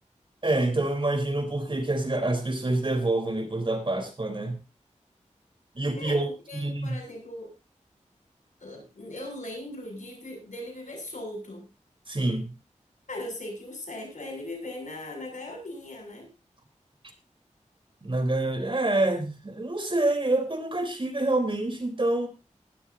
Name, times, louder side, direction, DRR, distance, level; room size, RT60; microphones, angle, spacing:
voice 1, 0.4-4.6 5.8-6.3 6.5-7.0 12.1-12.5 18.0-22.3, right 2 dB, 40° right, 5 dB, 3.7 m, -27 dB
voice 2, 6.0-7.5 8.6-11.6 13.1-16.3, left 1 dB, 75° left, 2 dB, 6.8 m, -39 dB
19.0 x 13.0 x 2.7 m, 0.28 s
wide cardioid pair, 55°, 13 cm